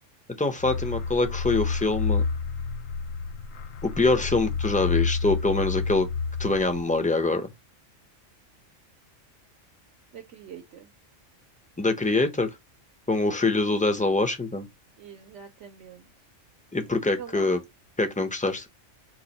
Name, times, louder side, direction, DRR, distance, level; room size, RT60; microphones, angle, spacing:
voice 1, 0.4-2.2 3.8-6.1 6.4-7.5 11.8-12.5 13.1-14.7 16.7-17.6 18.0-18.7, left 2 dB, 10° left, 0.4 m, -24 dB
sound 1, 0.6-7.1, left 5 dB, 90° left, 1.1 m, -30 dB
voice 2, 10.1-10.9 15.0-16.1 17.2-17.5, right 8 dB, 70° right, 0.9 m, -44 dB
4.6 x 2.5 x 4.0 m
omnidirectional pair, 1.3 m